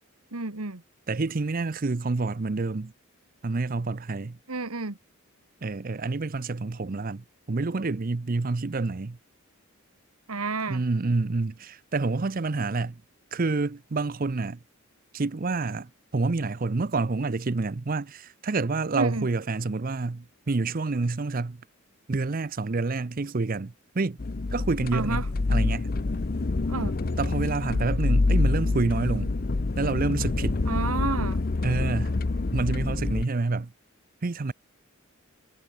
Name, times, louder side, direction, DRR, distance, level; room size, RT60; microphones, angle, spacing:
voice 1, 0.3-0.8 4.5-5.0 10.3-10.8 19.0-19.3 24.9-25.3 26.7-26.9 30.7-31.4, right 3 dB, 90° right, 1.9 m, -30 dB
voice 2, 1.1-2.9 3.4-4.4 5.6-9.2 10.7-13.0 13.3-14.6 15.1-21.6 22.1-24.2 24.5-25.9 27.2-29.3 29.8-30.6 31.6-32.1 32.5-33.7 34.2-34.5, right 3 dB, 40° right, 0.6 m, -28 dB
sound 1, 24.2-33.2, left 3 dB, 40° left, 0.6 m, -26 dB
head